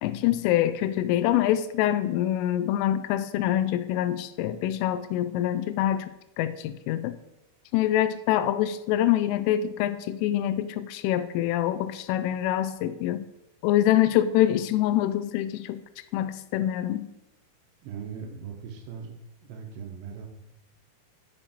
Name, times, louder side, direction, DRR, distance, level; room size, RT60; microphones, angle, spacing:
voice 1, 0.0-6.1 6.4-7.1 7.7-13.2 13.6-15.8 16.1-17.1, left 12 dB, 85° left, 12 dB, 3.1 m, -25 dB
voice 2, 17.8-19.1 19.4-20.3, right 6 dB, 75° right, 3 dB, 2.9 m, -39 dB
7.7 x 6.5 x 4.4 m, 0.92 s
omnidirectional pair, 5.7 m